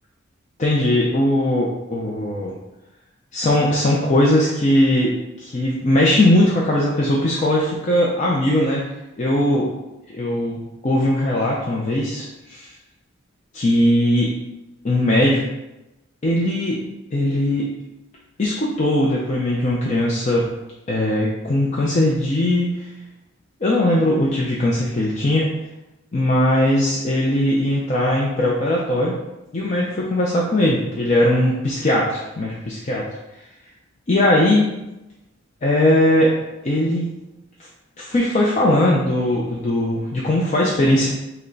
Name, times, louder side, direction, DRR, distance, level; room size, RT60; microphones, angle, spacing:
voice 1, 0.6-2.5 3.3-5.1 5.4-8.8 9.2-9.7 10.1-10.6 10.8-12.7 13.5-14.3 14.8-15.4 16.2-16.8 17.1-17.7 18.4-20.5 20.9-22.7 23.6-25.5 26.1-29.2 29.5-33.1 34.1-34.7 35.6-36.3 36.6-37.1 38.0-41.1, left 1 dB, 35° left, -4 dB, 0.5 m, -19 dB
5.4 x 2.2 x 3.9 m, 0.96 s
head